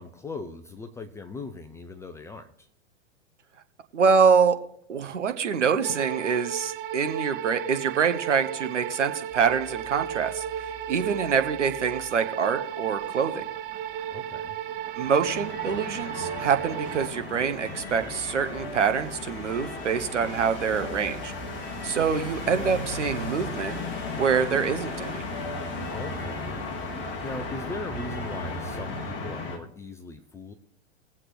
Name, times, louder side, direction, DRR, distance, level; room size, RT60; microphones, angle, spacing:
voice 1, 0.0-2.7 14.1-14.6 25.9-26.6 27.2-30.5, left 3 dB, 10° left, 7 dB, 0.5 m, -39 dB
voice 2, 3.9-4.6 4.9-13.4 15.0-21.3 21.8-23.8 24.2-25.2, right 6 dB, 75° right, 8 dB, 1.2 m, -25 dB
sound 1, 5.8-17.1, right 10 dB, 45° right, 0.9 m, -34 dB
sound 2, 9.3-29.1, left 1 dB, 30° right, 2.7 m, -49 dB
sound 3, 15.0-29.6, left 2 dB, 30° left, 1.9 m, -35 dB
21.0 x 7.8 x 3.2 m, 0.69 s
figure-of-eight pair, 105°, 37 cm